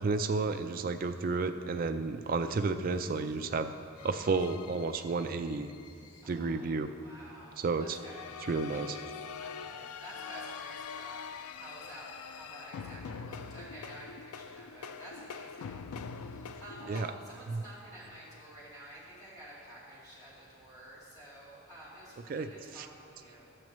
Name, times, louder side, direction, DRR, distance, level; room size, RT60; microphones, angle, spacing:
voice 1, 0.0-3.7 4.0-5.7 6.3-6.9 7.6-8.0 8.5-9.0 16.9-17.1 17.5-17.6 22.3-22.5 22.7-22.9, right 4 dB, 40° right, 8 dB, 0.3 m, -31 dB
sound 1, 4.0-6.2 7.9-17.1, left 6 dB, 90° left, 0.4 m, -44 dB
voice 2, 5.8-23.6, right 1 dB, 15° left, -9 dB, 2.3 m, -51 dB
12.5 x 8.8 x 3.1 m, 2.6 s
head